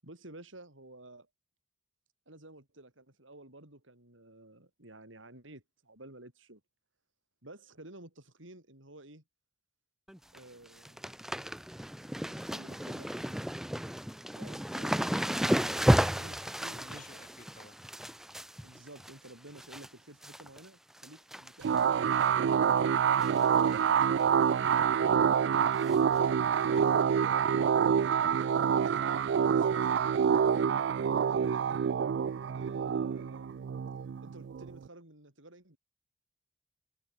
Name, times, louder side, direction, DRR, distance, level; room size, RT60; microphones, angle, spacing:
voice 1, 0.0-1.3 2.3-6.6 7.4-9.2 10.3-11.2 12.5-13.5 14.4-17.2 18.6-23.1 23.6-25.4 26.6-27.5 27.8-30.0 30.5-30.9 31.2-31.8 32.5-33.7 34.2-35.8, right 1 dB, 85° right, 6.4 m, -53 dB
sound 1, 10.1-10.4 10.7-19.9 20.2-20.7 21.0-21.8 22.1-22.2 23.2-23.5 23.7-23.8 24.2-24.3 25.9-26.0 26.7-26.8, equal, ahead, 0.5 m, -33 dB
voice 2, 16.4-18.0 26.5-27.0, left 3 dB, 40° left, 2.6 m, -57 dB
sound 2, 21.6-34.9, right 7 dB, 65° right, 0.3 m, -27 dB
head